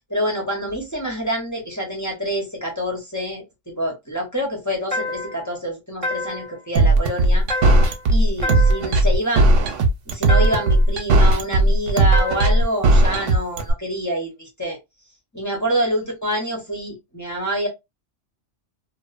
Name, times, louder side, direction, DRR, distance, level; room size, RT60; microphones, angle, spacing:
voice 1, 0.1-7.4 8.1-9.7 10.1-14.8 15.3-17.7, equal, 20° left, 0.6 m, -26 dB
sound 1, 4.9-5.5 6.0-6.6 7.5-8.0 8.4-9.0 10.3-10.8 12.1-12.7, left 2 dB, 35° right, 0.7 m, -28 dB
sound 2, 6.8-13.7, right 2 dB, 90° right, 1.0 m, -16 dB
2.8 x 2.0 x 2.4 m
omnidirectional pair, 1.2 m